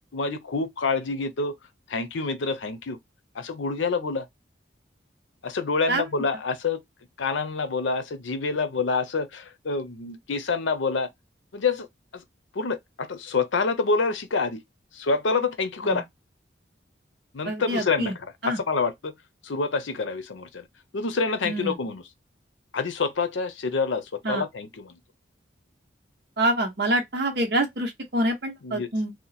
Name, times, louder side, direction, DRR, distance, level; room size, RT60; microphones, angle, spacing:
voice 1, 0.1-1.6 1.9-3.0 3.3-4.3 5.4-6.8 7.2-11.1 11.5-11.9 12.1-12.2 12.5-14.6 14.9-16.0 17.3-19.1 19.4-20.6 20.9-22.0 22.7-25.0 28.6-28.9, left 4 dB, 90° left, 0.6 m, -27 dB
voice 2, 17.4-18.1 18.4-18.6 21.4-21.8 24.2-24.4 26.4-29.1, right 1 dB, 60° right, 0.9 m, -26 dB
2.9 x 2.2 x 4.1 m
head